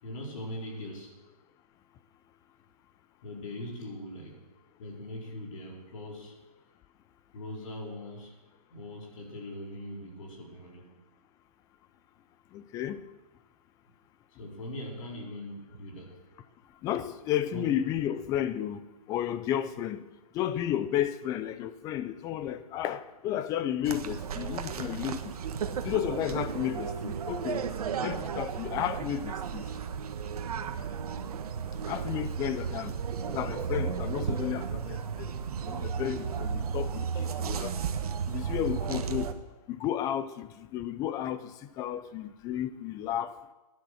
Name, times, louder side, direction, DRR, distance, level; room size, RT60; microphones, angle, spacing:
voice 1, 0.0-1.2 3.2-4.4 4.8-6.3 7.3-8.3 8.7-10.9 14.4-16.2 17.5-17.7, left 1 dB, 55° left, 4.5 m, -41 dB
voice 2, 12.5-13.0 16.8-18.8 19.1-20.0 20.3-25.2 25.8-27.6 28.0-29.6 31.9-32.9 33.3-35.3 35.7-37.7 38.3-39.3 39.7-41.5 41.8-43.4, left 11 dB, 15° left, 0.6 m, -32 dB
sound 1, 23.8-39.3, right 7 dB, 65° right, 1.4 m, -34 dB
16.5 x 10.5 x 6.4 m
hypercardioid pair, 150°, 20 cm